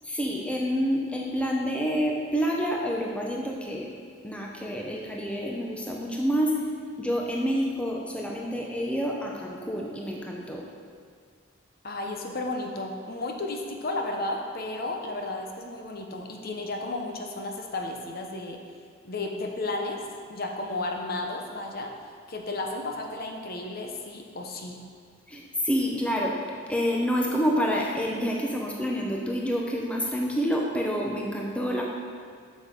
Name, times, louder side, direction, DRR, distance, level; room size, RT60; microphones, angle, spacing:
voice 1, 0.0-3.9 4.2-6.6 7.0-10.6 25.3-26.4 26.7-31.8, equal, 5° left, -2 dB, 0.7 m, -28 dB
voice 2, 11.8-18.6 19.0-20.0 20.3-21.9 22.3-24.8, left 2 dB, 45° left, 2 dB, 0.8 m, -33 dB
8.0 x 6.4 x 5.1 m, 2.1 s
head